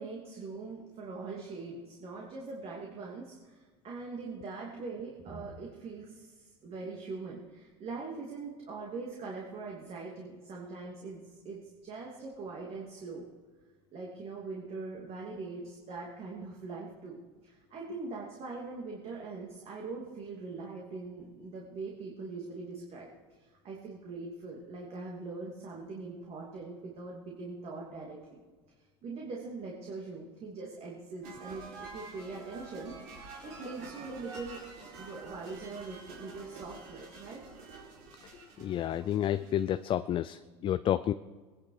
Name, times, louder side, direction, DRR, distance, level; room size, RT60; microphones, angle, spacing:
voice 1, 0.0-13.3 13.9-23.1 23.4-28.4 29.0-33.0 33.4-34.6 35.0-37.4, right 3 dB, 45° right, -2 dB, 2.8 m, -42 dB
sound 1, 31.2-39.8, right 3 dB, 70° right, 4.4 m, -48 dB
voice 2, 38.6-41.1, left 11 dB, 35° left, 12 dB, 0.5 m, -30 dB
20.0 x 10.5 x 4.9 m, 1.4 s
supercardioid pair, 100°, 14 cm